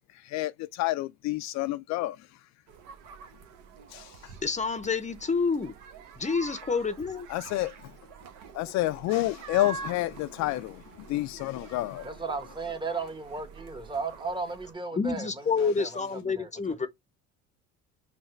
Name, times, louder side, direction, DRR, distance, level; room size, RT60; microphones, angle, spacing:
voice 1, 0.3-2.2 3.9-4.0 7.3-7.7 8.5-10.8 11.1-12.1, left 16 dB, 60° left, 0.4 m, -29 dB
sound 1, 2.7-14.7, right 5 dB, 75° right, 1.0 m, -46 dB
voice 2, 4.4-5.7 6.2-7.3 14.9-16.9, left 5 dB, 20° left, 0.7 m, -28 dB
voice 3, 12.0-16.5, right 4 dB, 15° right, 1.1 m, -35 dB
5.6 x 2.3 x 3.1 m
hypercardioid pair, 70°, 32 cm